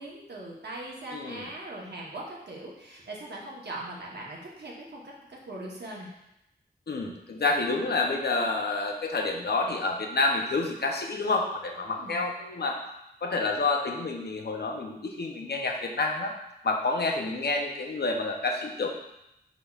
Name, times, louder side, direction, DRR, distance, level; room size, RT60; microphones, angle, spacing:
voice 1, 0.0-6.1 11.8-12.1, right 1 dB, 80° right, -3 dB, 1.0 m, -40 dB
voice 2, 1.1-1.5 6.9-12.8 13.2-16.3 16.6-18.9, left 3 dB, 75° left, 1 dB, 0.6 m, -28 dB
5.1 x 4.1 x 2.4 m, 0.86 s
wide cardioid pair, 90°, 17 cm